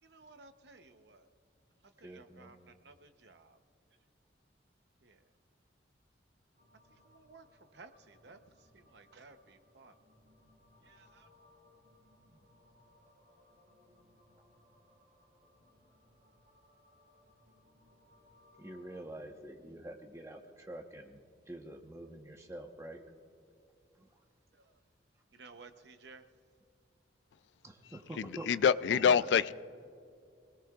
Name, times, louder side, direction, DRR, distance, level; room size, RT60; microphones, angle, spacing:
voice 1, 0.0-1.3 1.8-3.6 5.0-5.3 6.9-10.0 10.8-11.3 24.5-24.8 25.3-26.3, right 3 dB, 65° right, 0.8 m, -57 dB
voice 2, 2.0-2.8 12.3-12.4 18.6-21.2 21.5-23.0 23.9-24.2 27.6-28.6 28.9-29.3, right 1 dB, 15° right, 1.0 m, -46 dB
sound 1, 6.5-19.1, left 1 dB, 45° right, 4.0 m, -66 dB
voice 3, 27.9-29.5, left 7 dB, 70° left, 0.3 m, -27 dB
27.5 x 18.0 x 2.4 m
head